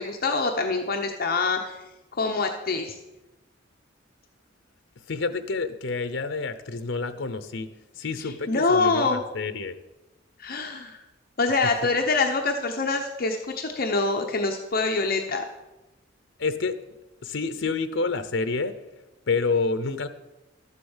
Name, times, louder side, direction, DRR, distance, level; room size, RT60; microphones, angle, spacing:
voice 1, 0.0-1.8 2.1-3.0 8.5-9.2 10.4-11.0 11.4-15.4, left 3 dB, 50° left, 3 dB, 0.9 m, -25 dB
voice 2, 5.1-7.7 7.9-9.8 16.4-16.8 17.2-18.7 19.3-20.1, left 4 dB, 75° left, 11 dB, 0.7 m, -28 dB
12.5 x 8.3 x 7.2 m, 1.0 s
head